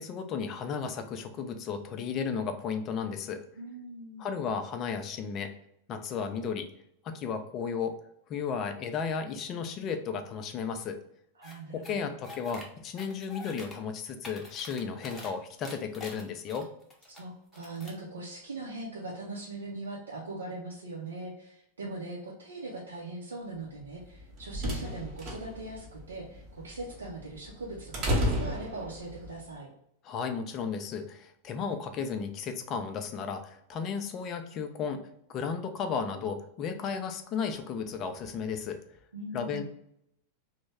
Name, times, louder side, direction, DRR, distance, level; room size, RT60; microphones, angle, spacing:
voice 1, 0.0-3.4 4.2-5.5 5.9-6.7 7.0-8.0 8.3-11.0 11.7-16.7 30.0-35.0 35.3-38.8 39.3-39.6, left 6 dB, 35° left, 7 dB, 0.4 m, -34 dB
voice 2, 3.6-4.3 11.4-12.1 17.1-29.7 39.1-39.6, right 2 dB, 70° right, -4 dB, 0.6 m, -41 dB
sound 1, 11.4-11.5 11.8-12.6 13.0-13.7 14.1-15.3 15.6-17.2 17.5-18.0, left 2 dB, 10° left, 0.7 m, -46 dB
sound 2, 24.0-29.3, equal, 35° right, 0.9 m, -33 dB
3.0 x 2.1 x 3.3 m, 0.74 s
figure-of-eight pair, 90°, 0 cm